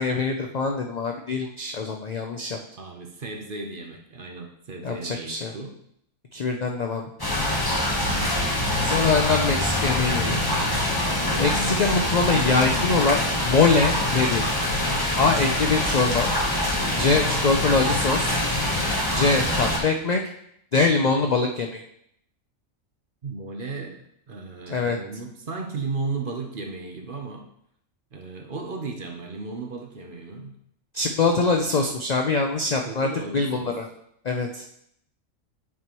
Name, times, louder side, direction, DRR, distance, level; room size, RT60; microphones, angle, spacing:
voice 1, 0.0-2.6 4.8-5.5 6.3-7.0 8.8-10.4 11.4-14.6 15.2-16.3 16.9-18.3 19.1-20.2 20.7-21.8 24.7-25.0 30.9-33.8 34.2-34.6, left 4 dB, 65° left, 3 dB, 0.4 m, -23 dB
voice 2, 2.8-5.7 8.0-8.3 17.2-17.4 23.2-27.5 28.1-30.6 32.6-33.7, right 4 dB, 45° right, 2 dB, 0.9 m, -35 dB
sound 1, 7.2-19.8, left 1 dB, 20° left, 1.0 m, -24 dB
9.4 x 4.4 x 3.0 m, 0.73 s
omnidirectional pair, 1.4 m